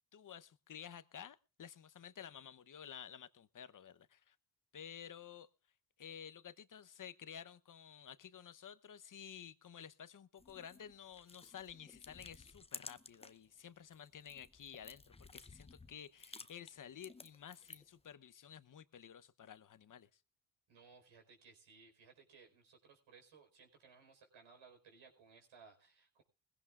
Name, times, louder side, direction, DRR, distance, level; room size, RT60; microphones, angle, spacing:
voice 1, 0.1-4.4 4.7-5.5 6.0-20.1, left 8 dB, 40° left, 14 dB, 0.9 m, -53 dB
sound 1, 10.4-13.5 13.8-18.0, left 3 dB, 15° left, 0.7 m, -55 dB
voice 2, 20.7-26.2, right 5 dB, 75° right, 4 dB, 4.8 m, -62 dB
20.5 x 16.0 x 2.5 m, 0.32 s
supercardioid pair, 60°, 48 cm